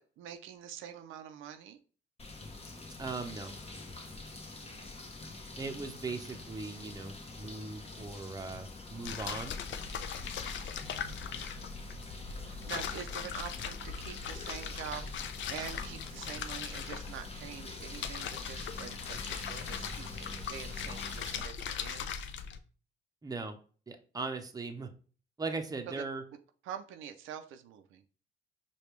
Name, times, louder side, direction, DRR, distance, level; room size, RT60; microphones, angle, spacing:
voice 1, 0.0-1.8 4.6-4.9 11.2-11.5 12.4-22.1 25.9-26.0 26.6-28.0, right 9 dB, 85° right, 7 dB, 0.5 m, -45 dB
sound 1, 2.2-21.4, left 2 dB, 30° left, 0.9 m, -46 dB
voice 2, 3.0-3.5 5.6-9.6 23.2-23.6 23.9-24.9 25.4-26.2, right 3 dB, 20° right, 5 dB, 0.7 m, -39 dB
sound 2, 9.0-22.6, left 7 dB, 70° left, 0.5 m, -40 dB
5.0 x 2.3 x 3.1 m, 0.39 s
cardioid pair, 90°, 20 cm